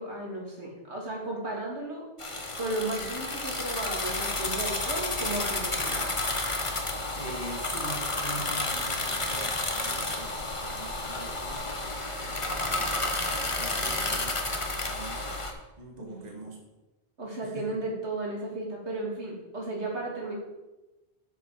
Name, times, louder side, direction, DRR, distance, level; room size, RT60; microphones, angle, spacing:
voice 1, 0.0-2.1 2.6-6.1 16.0-16.2 17.2-20.3, right 2 dB, 85° right, -3 dB, 3.3 m, -34 dB
sound 1, 2.2-15.5, left 2 dB, 30° left, 1.3 m, -31 dB
voice 2, 7.1-14.4 14.7-15.4 15.8-16.6 17.4-17.7, right 2 dB, 40° right, 0 dB, 1.6 m, -43 dB
12.0 x 7.3 x 5.1 m, 1.0 s
omnidirectional pair, 1.1 m